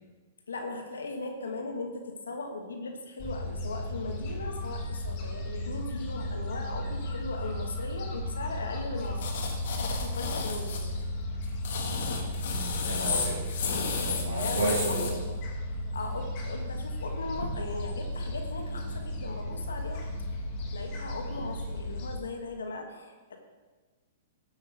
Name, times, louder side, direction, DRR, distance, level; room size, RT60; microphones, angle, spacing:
voice 1, 0.5-9.2 9.7-11.0 14.3-15.4 15.9-20.1 20.7-23.4, left 3 dB, 85° left, 4 dB, 1.4 m, -38 dB
Gull seagull, 3.2-22.1, left 1 dB, 45° left, 2.0 m, -35 dB
sound 1, 9.2-10.8 11.4-15.1, left 5 dB, 65° left, 1.5 m, -33 dB
voice 2, 12.4-13.4 14.1-15.1, right 2 dB, 85° right, -7 dB, 2.1 m, -32 dB
12.5 x 8.0 x 3.4 m, 1.3 s
hypercardioid pair, 120°, 0 cm